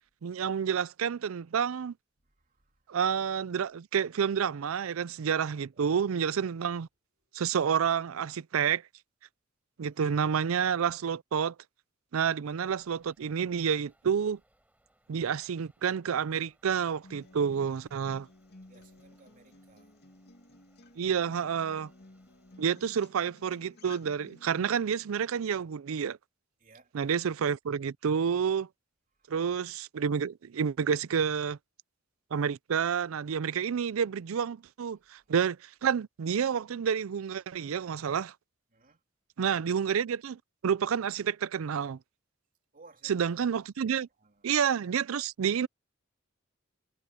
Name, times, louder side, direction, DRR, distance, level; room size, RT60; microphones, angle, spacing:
voice 1, 0.2-1.9 2.9-6.9 7.3-8.8 9.8-11.5 12.1-14.4 15.1-18.3 21.0-21.9 22.6-26.2 26.9-28.7 29.3-31.6 32.3-38.3 39.4-42.0 43.0-44.1 44.4-45.7, right 7 dB, 75° right, 0.4 m, -29 dB
voice 2, 2.3-2.9 5.8-5.9 7.3-7.4 9.8-10.0 12.3-12.4 18.6-19.9 26.6-26.9 29.2-29.3 38.7-39.0 42.7-43.1 43.9-44.5, right 3 dB, 40° right, 3.2 m, -60 dB
sound 1, 12.5-22.7, right 1 dB, 10° right, 5.7 m, -70 dB
Acoustic guitar, 17.0-25.0, left 2 dB, 55° left, 2.5 m, -55 dB
head